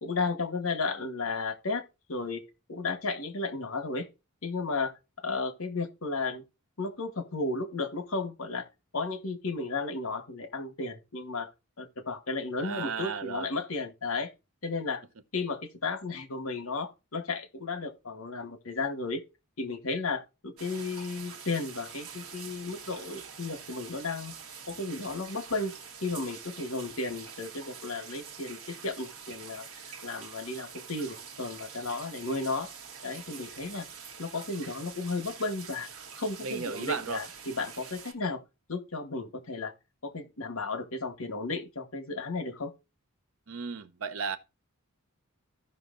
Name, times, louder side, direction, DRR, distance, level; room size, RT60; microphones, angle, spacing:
voice 1, 0.0-1.8 2.1-2.4 2.7-4.1 4.4-6.4 6.8-8.7 8.9-11.5 11.8-14.3 14.6-15.0 15.3-19.2 19.6-24.3 24.7-25.7 26.0-29.7 30.0-32.7 33.0-33.9 34.2-35.9 36.2-38.4 38.7-39.7 40.0-42.7, left 3 dB, 70° left, 1.2 m, -34 dB
voice 2, 12.6-13.5 36.4-37.2 43.5-44.4, right 5 dB, 65° right, 0.7 m, -35 dB
sound 1, 20.6-38.1, right 6 dB, 80° right, 1.2 m, -46 dB
15.5 x 5.6 x 2.5 m
head